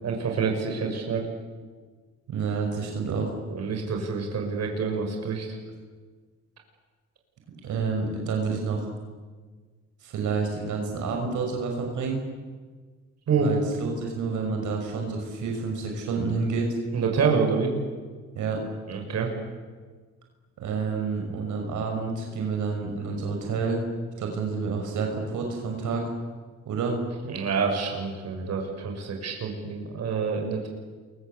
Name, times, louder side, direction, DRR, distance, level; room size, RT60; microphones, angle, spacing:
voice 1, 0.0-1.2 3.5-5.6 13.3-13.5 16.9-17.7 18.9-19.3 27.2-30.7, right 5 dB, 60° right, 2 dB, 6.4 m, -27 dB
voice 2, 2.3-3.3 7.6-8.9 10.0-12.2 13.4-16.8 18.3-18.6 20.6-23.8 24.2-26.1 26.7-27.0, right 4 dB, 80° right, 2 dB, 6.1 m, -29 dB
28.5 x 23.5 x 8.4 m, 1.5 s
cardioid pair, 90°, 30 cm